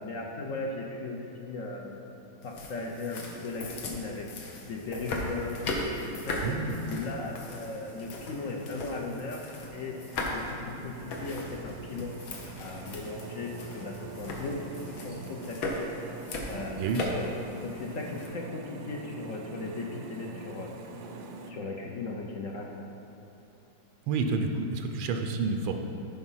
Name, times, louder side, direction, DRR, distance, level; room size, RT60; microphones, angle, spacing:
voice 1, 0.0-2.0 2.4-6.4 6.8-12.1 12.4-14.6 15.0-15.7 16.1-16.8 17.1-20.7 21.4-22.9, left 3 dB, 60° left, 0 dB, 0.9 m, -37 dB
sound 1, 2.4-18.3, left 2 dB, 80° left, 1.8 m, -38 dB
voice 2, 6.4-6.9 16.8-17.1 24.1-25.7, right 4 dB, 90° right, 4 dB, 1.5 m, -29 dB
sound 2, 6.8-21.5, right 3 dB, 65° right, 1.0 m, -45 dB
11.0 x 5.0 x 5.6 m, 3.0 s
omnidirectional pair, 2.2 m